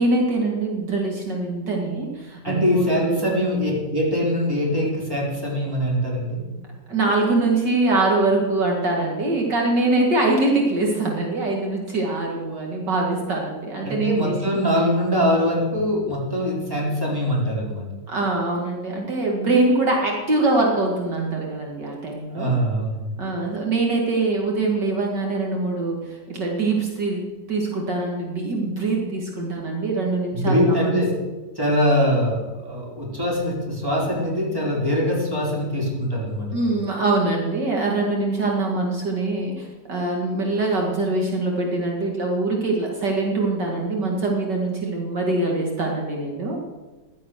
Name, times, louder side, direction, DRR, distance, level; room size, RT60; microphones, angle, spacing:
voice 1, 0.0-3.3 6.9-14.6 18.1-22.5 23.2-31.1 36.5-46.6, right 2 dB, 65° right, -1 dB, 2.7 m, -23 dB
voice 2, 2.4-6.4 13.8-17.9 22.3-23.1 30.3-31.1 31.6-36.7, equal, 10° right, -4 dB, 4.4 m, -23 dB
15.0 x 11.5 x 6.5 m, 1.2 s
omnidirectional pair, 2.1 m